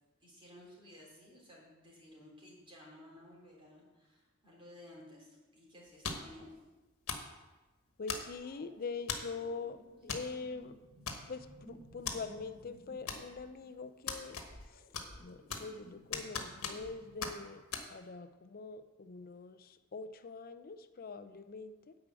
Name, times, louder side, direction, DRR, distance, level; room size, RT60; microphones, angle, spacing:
voice 1, 0.2-6.5, left 1 dB, 25° right, -4 dB, 3.6 m, -55 dB
sound 1, 6.0-6.4 7.1-7.3 8.1-8.5 9.1-9.4 10.1-10.3 10.6-10.7 11.1-11.5 12.1-12.2 13.1-13.5 14.1-14.7 14.9-15.8 16.1-16.9 17.2-17.3 17.7-17.9, left 6 dB, 80° left, 1.3 m, -39 dB
voice 2, 8.0-10.8 11.3-14.4 14.7-14.8 15.2-17.6 17.9-22.0, left 4 dB, 45° left, 11 dB, 0.6 m, -44 dB
sound 2, 8.2-17.3, right 1 dB, 15° left, 3.4 m, -59 dB
10.0 x 4.9 x 7.6 m, 1.2 s
head